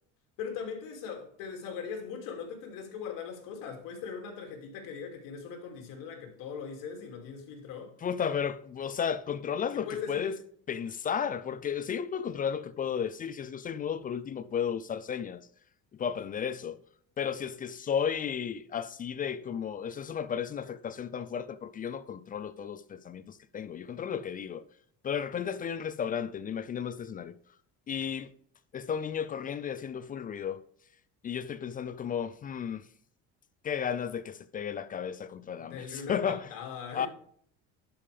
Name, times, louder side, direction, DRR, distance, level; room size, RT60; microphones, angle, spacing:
voice 1, 0.4-7.9 9.7-10.4 35.6-37.1, left 6 dB, 75° left, 2.6 m, -40 dB
voice 2, 8.0-10.3 10.7-15.4 16.0-16.8 17.2-24.6 25.0-27.4 27.9-28.3 28.7-30.6 31.2-32.8 33.6-36.5 36.9-37.1, left 7 dB, 25° left, 0.4 m, -33 dB
11.5 x 5.4 x 3.4 m
cardioid pair, 135°, 33 cm